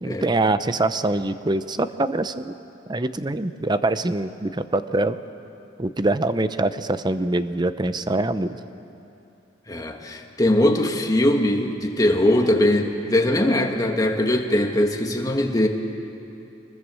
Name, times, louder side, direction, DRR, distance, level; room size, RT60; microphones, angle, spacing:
voice 1, 0.0-2.5 2.9-5.2 5.8-8.6, right 2 dB, 25° right, 12 dB, 0.6 m, -24 dB
voice 2, 9.7-15.7, left 1 dB, 20° left, 3 dB, 1.6 m, -21 dB
24.5 x 20.5 x 7.7 m, 2.9 s
head